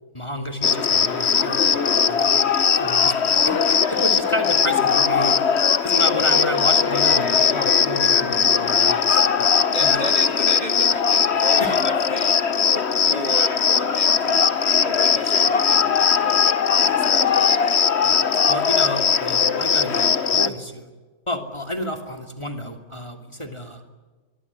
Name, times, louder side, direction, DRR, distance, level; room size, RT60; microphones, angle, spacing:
voice 1, 0.1-5.3 5.8-9.5 9.8-10.0 11.6-11.7 18.5-20.9 21.3-23.8, equal, 20° left, 5 dB, 2.9 m, -31 dB
Cricket, 0.6-20.5, left 7 dB, 50° left, 1.3 m, -19 dB
voice 2, 5.1-5.4 9.5-12.4 12.7-14.5 14.8-17.6, right 1 dB, 30° right, 5 dB, 2.6 m, -34 dB
24.0 x 23.5 x 9.8 m, 1.3 s
omnidirectional pair, 1.4 m